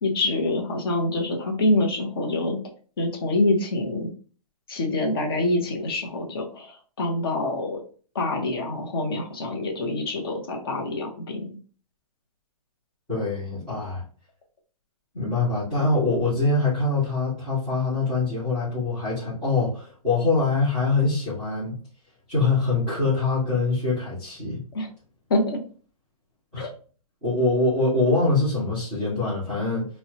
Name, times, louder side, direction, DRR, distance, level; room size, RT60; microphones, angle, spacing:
voice 1, 0.0-2.6 3.0-4.1 4.7-7.8 8.1-11.6 24.7-24.9 25.3-25.6 26.6-26.7, left 2 dB, 35° left, 2 dB, 0.7 m, -26 dB
voice 2, 13.1-14.0 15.1-21.8 22.3-24.6 26.5-26.7 27.2-29.9, left 3 dB, ahead, -17 dB, 0.4 m, -24 dB
4.1 x 2.1 x 2.8 m, 0.42 s
hypercardioid pair, 180°, 20 cm